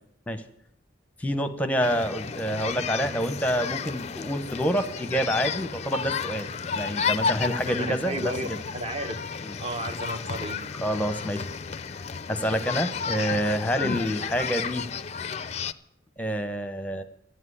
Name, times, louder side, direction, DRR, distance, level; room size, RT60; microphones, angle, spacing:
voice 1, 1.2-6.5 6.7-8.6 9.4-9.6 10.8-11.5 12.3-14.9 16.2-17.0, equal, 10° left, 8 dB, 0.8 m, -27 dB
sound 1, 1.8-15.7, left 6 dB, 35° left, 0.4 m, -32 dB
voice 2, 7.7-8.5 8.7-9.1 9.6-10.6, right 1 dB, 30° right, 7 dB, 1.1 m, -32 dB
13.0 x 7.5 x 9.8 m, 0.73 s
head